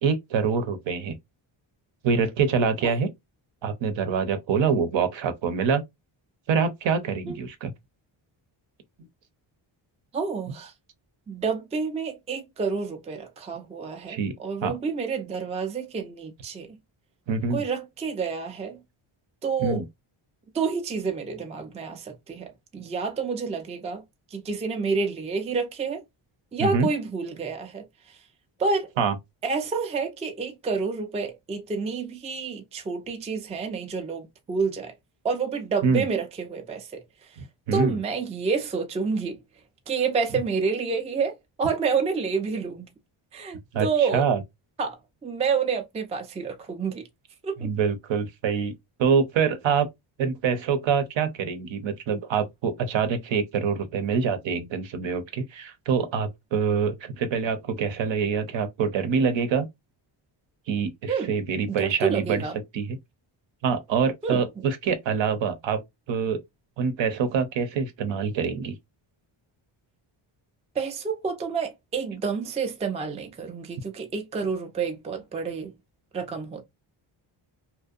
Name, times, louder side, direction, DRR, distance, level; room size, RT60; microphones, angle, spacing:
voice 1, 0.0-1.1 2.0-3.1 3.6-5.8 6.5-7.7 14.1-14.3 14.6-14.7 17.3-17.6 19.6-19.9 26.6-26.9 29.0-29.1 35.8-36.0 37.4-38.0 43.7-44.4 47.6-49.9 50.2-59.7 60.7-62.4 62.7-63.0 63.6-65.8 66.1-66.4 66.8-68.7, right 6 dB, 65° right, 0.7 m, -25 dB
voice 2, 10.1-10.7 11.3-16.8 17.5-18.8 19.4-19.8 20.5-24.0 24.3-26.0 26.5-27.8 28.6-28.9 29.4-34.9 35.2-37.0 37.7-39.4 39.9-42.9 43.3-44.3 44.8-45.0 45.2-47.1 47.4-47.7 61.1-61.3 61.7-62.6 64.2-64.4 70.8-75.8 76.1-76.6, right 5 dB, 15° right, 0.3 m, -29 dB
2.6 x 2.1 x 2.3 m
cardioid pair, 105°, 50 cm